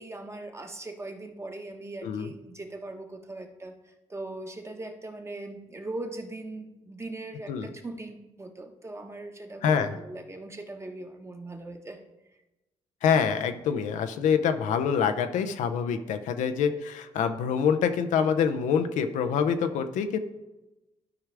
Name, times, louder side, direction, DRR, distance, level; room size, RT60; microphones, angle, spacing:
voice 1, 0.0-12.0, right 2 dB, 20° right, 5 dB, 1.1 m, -40 dB
voice 2, 2.0-2.3 7.5-7.7 9.6-10.0 13.0-20.2, left 7 dB, 90° left, 8 dB, 0.6 m, -26 dB
12.0 x 4.7 x 3.4 m, 1.0 s
cardioid pair, 75°, 12 cm